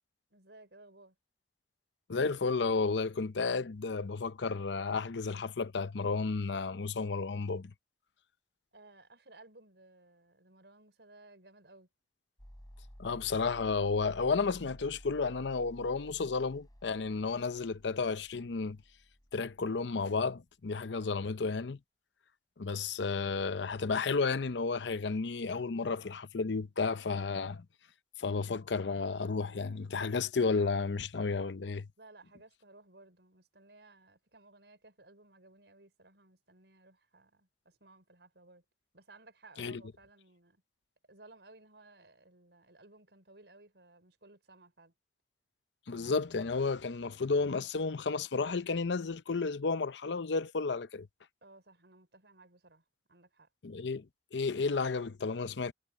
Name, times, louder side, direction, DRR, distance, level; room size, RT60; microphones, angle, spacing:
voice 1, 0.3-1.2 8.7-11.9 32.0-38.6 38.9-40.6 41.1-44.9 51.4-52.8 53.1-53.5, right 2 dB, 75° right, 5.5 m, -58 dB
voice 2, 2.1-7.7 13.0-18.8 19.3-21.8 22.6-27.6 28.2-31.9 39.6-39.8 45.9-51.1 53.6-54.1 54.3-55.7, left 4 dB, 85° left, 0.7 m, -32 dB
sound 1, 12.4-20.5, equal, 20° left, 4.0 m, -54 dB
head